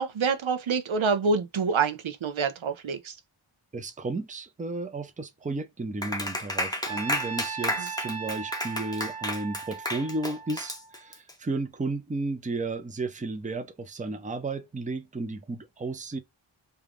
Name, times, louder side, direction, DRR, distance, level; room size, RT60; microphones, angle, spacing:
voice 1, 0.0-3.1, right 5 dB, 75° right, 0.6 m, -26 dB
voice 2, 3.7-16.2, right 3 dB, 15° right, 0.5 m, -33 dB
Clapping, 6.0-11.3, left 1 dB, 10° left, 0.7 m, -32 dB
Trumpet, 6.9-11.1, right 6 dB, 30° right, 0.9 m, -38 dB
2.4 x 2.2 x 3.4 m
wide cardioid pair, 40°, 48 cm